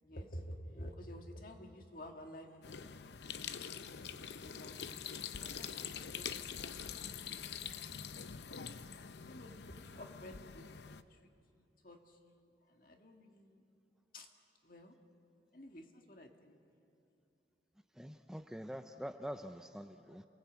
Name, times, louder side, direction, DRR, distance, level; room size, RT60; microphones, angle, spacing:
voice 1, 0.0-3.0 3.3-4.8 5.3-7.8 9.2-13.6 14.1-14.3 14.6-15.0 15.5-16.6, equal, 50° left, 3 dB, 2.0 m, -52 dB
sound 1, 2.6-11.0, left 7 dB, 75° left, 0.7 m, -45 dB
voice 2, 18.0-20.2, equal, 5° right, 7 dB, 0.5 m, -45 dB
28.5 x 19.0 x 8.3 m, 2.7 s
head